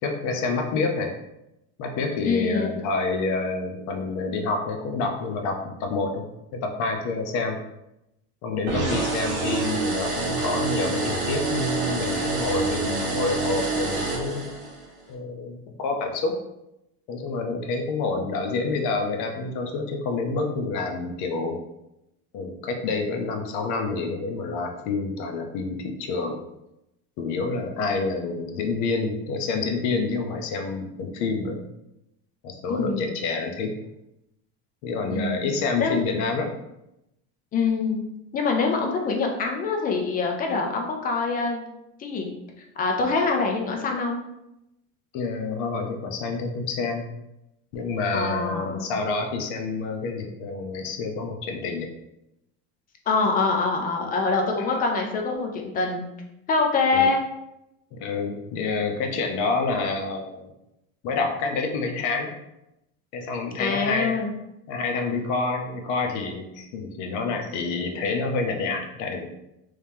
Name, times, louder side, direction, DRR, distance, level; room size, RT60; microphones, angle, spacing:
voice 1, 0.0-1.1 1.8-7.6 8.4-14.4 15.1-16.3 17.1-21.6 22.3-26.4 27.2-31.6 32.4-33.7 34.8-36.5 45.1-47.0 47.7-51.9 54.6-54.7 56.9-57.1 57.9-60.5 61.0-62.3 63.1-64.1 64.7-69.3, left 3 dB, 60° left, 3 dB, 0.7 m, -28 dB
voice 2, 2.2-2.7 12.2-12.3 32.7-33.1 35.1-35.5 35.8-36.0 37.5-38.0 38.3-41.6 42.0-42.3 42.8-44.2 48.1-48.9 53.1-56.1 56.5-57.2 63.6-64.3, left 4 dB, 25° left, 2 dB, 0.6 m, -25 dB
sound 1, 8.7-14.8, right 3 dB, 35° right, 1.2 m, -27 dB
3.2 x 2.8 x 3.5 m, 0.87 s
cardioid pair, 145°, 33 cm